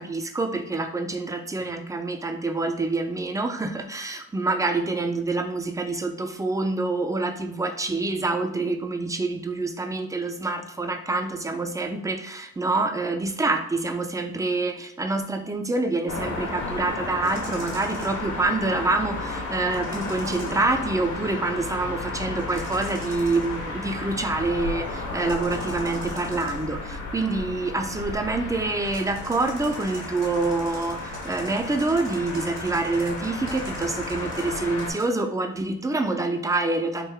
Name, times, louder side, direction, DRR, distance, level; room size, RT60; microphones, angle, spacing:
voice 1, 0.0-37.1, right 3 dB, 10° right, 6 dB, 0.4 m, -26 dB
sound 1, 16.1-34.9, left 3 dB, 75° left, 1.3 m, -33 dB
sound 2, 17.2-18.3 19.7-20.7 22.4-23.6 25.2-26.8 28.8-35.0, right 3 dB, 65° right, 1.6 m, -44 dB
3.8 x 2.6 x 4.3 m, 0.76 s
cardioid pair, 90°, 30 cm